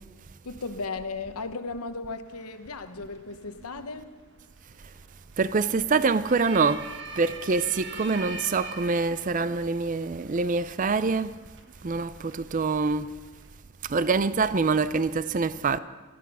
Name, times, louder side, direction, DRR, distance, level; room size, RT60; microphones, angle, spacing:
voice 1, 0.4-4.2, left 3 dB, 85° left, 1.1 m, -36 dB
sound 1, 2.3-13.5, right 4 dB, 55° right, 1.5 m, -45 dB
voice 2, 5.4-6.9 7.2-11.3 11.8-13.1 13.9-15.8, right 4 dB, 35° right, 0.4 m, -25 dB
18.5 x 14.0 x 5.5 m
head